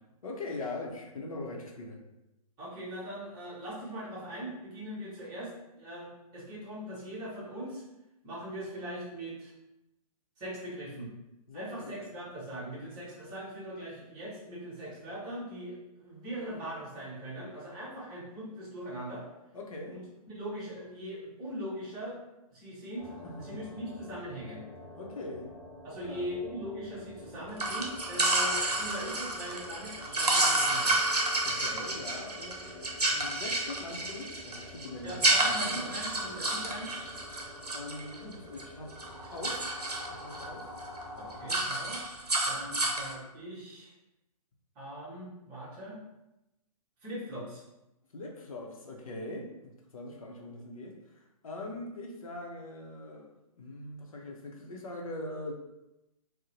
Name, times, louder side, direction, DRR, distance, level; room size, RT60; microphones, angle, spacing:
voice 1, 0.2-2.0 11.5-11.9 19.5-20.0 23.2-23.6 25.0-25.5 26.0-26.3 31.4-35.9 37.7-38.9 39.3-39.7 40.1-40.7 48.1-55.5, left 2 dB, 65° left, 0 dB, 0.6 m, -42 dB
voice 2, 2.6-7.8 8.2-9.5 10.4-11.1 11.5-19.3 19.9-20.0 20.3-22.2 22.5-24.6 25.8-31.0 35.0-37.0 41.2-42.2 42.4-43.9 44.7-46.0 47.0-47.6, equal, 20° right, -6 dB, 1.0 m, -41 dB
sound 1, 23.0-41.6, left 1 dB, 5° left, 0.9 m, -48 dB
sound 2, 27.6-38.6 38.9-40.5 40.8-41.0 41.3-43.1, right 2 dB, 90° right, 0.6 m, -30 dB
2.6 x 2.0 x 2.9 m, 0.93 s
figure-of-eight pair, 125°, 19 cm